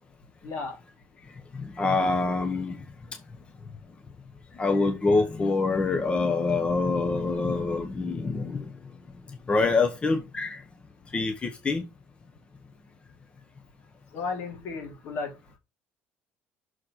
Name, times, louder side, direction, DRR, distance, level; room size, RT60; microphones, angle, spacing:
voice 1, 0.4-0.8 14.1-15.6, left 4 dB, 65° left, 3.4 m, -34 dB
voice 2, 1.5-2.8 4.5-8.7 9.3-10.6 11.1-11.8, left 3 dB, 25° left, 1.1 m, -25 dB
6.5 x 4.3 x 5.7 m
cardioid pair, 120°, 5 cm